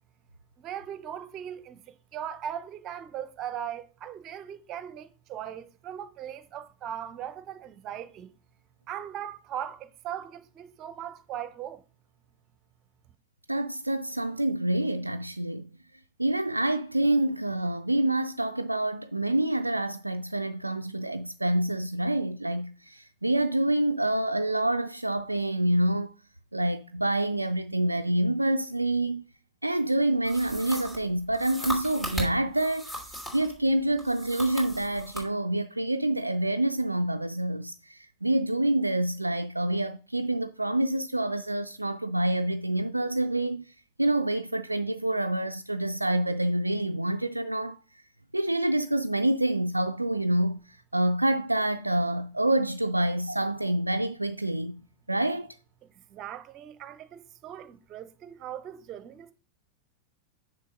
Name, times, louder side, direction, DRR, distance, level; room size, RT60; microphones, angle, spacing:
voice 1, 0.6-8.3 8.9-11.8 56.1-59.3, right 10 dB, 35° right, 0.8 m, -39 dB
voice 2, 13.5-15.8 16.2-26.1 26.5-29.2 29.6-47.8 48.3-54.8 55.1-55.6, right 1 dB, 85° right, 0.3 m, -27 dB
sound 1, 30.2-33.5 34.0-35.3, equal, 15° left, 2.9 m, -37 dB
6.6 x 5.7 x 5.1 m
figure-of-eight pair, 90°, 0 cm